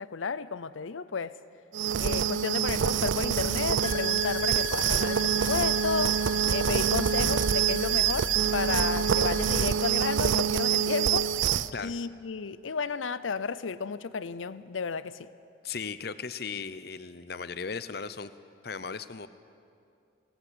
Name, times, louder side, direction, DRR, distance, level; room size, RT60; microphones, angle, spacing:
voice 1, 0.0-1.3 2.0-6.2 6.5-11.3 11.8-15.3, left 5 dB, 90° left, 0.6 m, -32 dB
sound 1, 1.7-11.7, right 8 dB, 85° right, 0.5 m, -26 dB
sound 2, 3.8-9.7, left 4 dB, 25° left, 1.2 m, -37 dB
voice 2, 15.6-18.3 18.6-19.3, left 5 dB, 55° left, 0.7 m, -37 dB
18.0 x 18.0 x 8.1 m
head